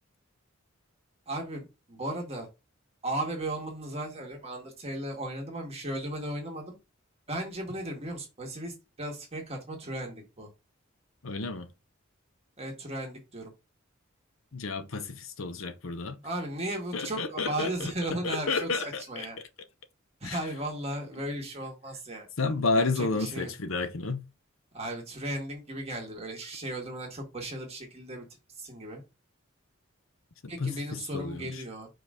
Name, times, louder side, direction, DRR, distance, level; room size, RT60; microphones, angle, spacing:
voice 1, 1.3-2.5 3.0-6.8 7.3-10.5 12.6-13.5 16.2-19.4 20.2-22.3 22.8-23.5 24.7-28.2 28.5-29.0 30.5-31.9, right 1 dB, 30° right, 1.7 m, -36 dB
voice 2, 11.2-11.7 14.5-16.2 16.9-17.9 18.2-19.5 20.2-20.4 22.4-24.2 30.4-31.6, left 3 dB, 75° left, 0.8 m, -31 dB
5.1 x 4.0 x 4.9 m
head